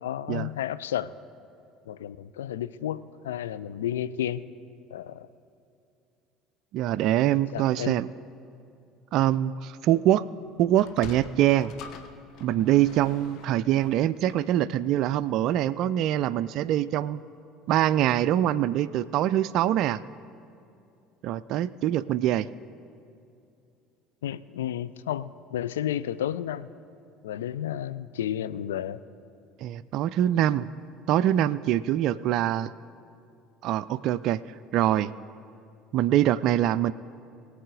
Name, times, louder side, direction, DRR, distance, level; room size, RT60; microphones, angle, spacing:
voice 1, 0.0-1.1 1.9-4.4 4.9-5.3 7.5-8.0 24.2-26.7 27.2-29.0, left 11 dB, 70° left, 15 dB, 0.4 m, -32 dB
voice 2, 6.7-8.1 9.1-10.3 10.6-11.7 12.4-17.2 17.7-20.0 21.2-22.5 29.6-30.7 31.1-32.7 33.6-34.4 34.7-35.1 35.9-36.9, right 12 dB, 55° right, 17 dB, 0.3 m, -24 dB
Sliding door, 10.7-15.3, left 6 dB, 50° left, 0.9 m, -46 dB
21.5 x 7.7 x 3.8 m, 2.6 s
figure-of-eight pair, 65°, 0 cm